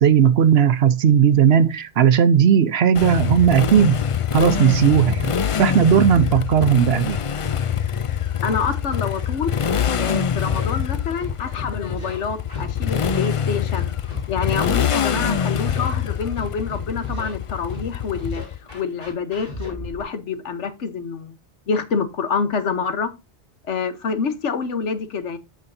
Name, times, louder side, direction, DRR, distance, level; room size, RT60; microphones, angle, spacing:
voice 1, 0.0-4.0 4.3-5.3 5.6-7.2 10.2-10.3, right 8 dB, 65° right, 0.9 m, -16 dB
Motorcycle, 2.9-18.7, left 8 dB, 60° left, 0.3 m, -24 dB
voice 2, 8.4-9.5 10.0-13.9 14.3-18.4 18.7-21.3 21.7-23.1 23.7-25.4, left 5 dB, 85° left, 1.3 m, -27 dB
Scratching (performance technique), 10.4-10.7 11.2-12.2 12.5-12.7 13.0-13.3 13.7-14.7 15.1-15.3 15.6-15.9 16.4-17.3 17.7-17.9 18.2-20.0, left 1 dB, 35° left, 5.9 m, -34 dB
14.5 x 5.1 x 2.6 m
omnidirectional pair, 1.2 m